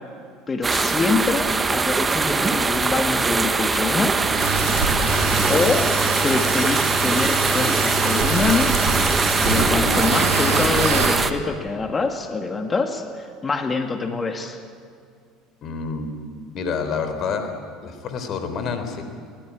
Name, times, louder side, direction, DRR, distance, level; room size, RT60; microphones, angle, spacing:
voice 1, 0.5-4.2 5.5-5.9 6.2-8.7 9.4-14.6, left 4 dB, 25° left, 5 dB, 2.4 m, -25 dB
sound 1, 0.6-11.3, right 4 dB, 25° right, 1.4 m, -22 dB
sound 2, 4.1-11.2, right 3 dB, 75° right, 6.1 m, -25 dB
voice 2, 15.6-16.1 16.5-17.5 17.8-19.1, left 5 dB, 50° left, 8 dB, 3.8 m, -28 dB
22.0 x 18.0 x 9.8 m, 2.3 s
hypercardioid pair, 70°, 0 cm